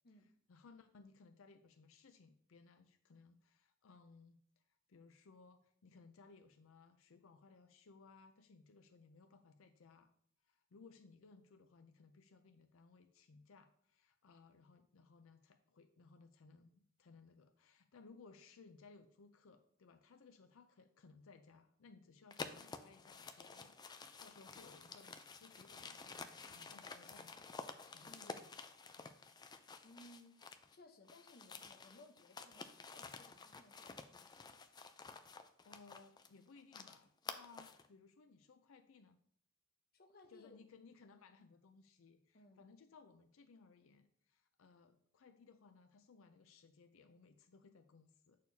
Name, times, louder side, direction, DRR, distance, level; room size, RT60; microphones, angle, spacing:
voice 1, 0.5-4.6 4.9-10.1 10.4-27.5 27.9-28.5 29.0-29.4 35.6-39.2 40.3-48.4, left 4 dB, 85° left, 0.5 m, -63 dB
sound 1, 22.3-30.8 31.1-37.9, left 4 dB, 20° left, 0.4 m, -51 dB
voice 2, 28.1-28.4 29.8-30.4 30.7-34.6 39.9-40.6 42.3-42.6, left 1 dB, 50° left, 0.9 m, -62 dB
8.2 x 6.6 x 2.7 m
head